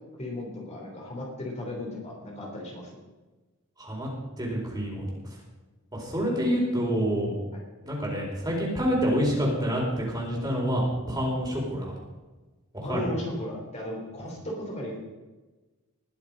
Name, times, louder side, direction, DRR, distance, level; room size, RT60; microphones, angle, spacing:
voice 1, 0.2-3.0 7.5-7.6 12.8-15.1, left 1 dB, 30° left, -2 dB, 3.3 m, -36 dB
voice 2, 4.4-5.0 5.9-7.3 7.8-9.8 10.1-11.9 12.7-13.1, equal, 20° right, -3 dB, 4.5 m, -27 dB
20.5 x 7.3 x 5.2 m, 1.2 s
head